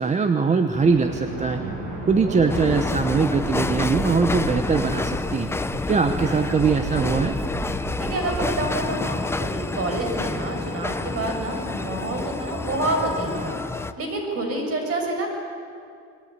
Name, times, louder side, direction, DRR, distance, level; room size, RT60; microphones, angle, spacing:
voice 1, 0.0-1.6 2.1-5.5 5.9-7.4, right 5 dB, 20° right, 8 dB, 1.0 m, -22 dB
sound 1, 0.7-9.2, right 2 dB, 70° right, 7.3 m, -34 dB
voice 2, 2.1-2.6 6.2-6.4 8.0-15.3, right 2 dB, 40° right, 2 dB, 6.8 m, -28 dB
sound 2, 2.5-13.9, left 3 dB, 5° left, 0.6 m, -28 dB
27.5 x 22.0 x 9.7 m, 2.4 s
cardioid pair, 155°, 34 cm